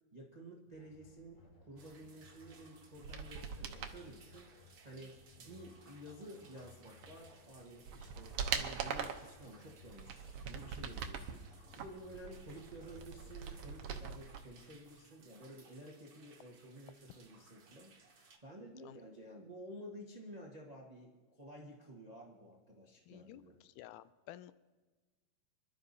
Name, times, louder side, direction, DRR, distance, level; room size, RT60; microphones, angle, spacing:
voice 1, 0.1-23.5, right 1 dB, 90° right, -2 dB, 0.3 m, -52 dB
sound 1, 0.7-14.0, left 4 dB, 70° left, 5.4 m, -61 dB
sound 2, 1.8-18.4, right 4 dB, 50° right, 1.9 m, -63 dB
sound 3, 2.9-4.0 7.0-7.1 7.6-9.3 9.9-11.3 11.7-14.4 14.7-14.8, right 7 dB, 70° right, 1.7 m, -41 dB
voice 2, 23.1-24.5, left 14 dB, 90° left, 14 dB, 2.1 m, -53 dB
25.5 x 12.5 x 2.7 m, 1.3 s
omnidirectional pair, 3.5 m